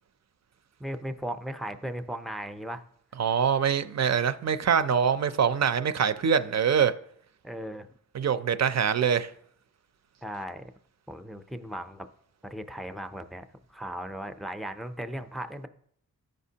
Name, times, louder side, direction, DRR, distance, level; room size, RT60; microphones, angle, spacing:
voice 1, 0.8-2.8 7.4-7.9 10.2-10.6 11.1-12.1 12.4-13.4 13.7-15.7, equal, ahead, 0.4 m, -37 dB
voice 2, 3.2-6.9 8.1-9.3, right 7 dB, 50° right, 0.5 m, -24 dB
13.5 x 5.2 x 2.8 m
wide cardioid pair, 115°, 34 cm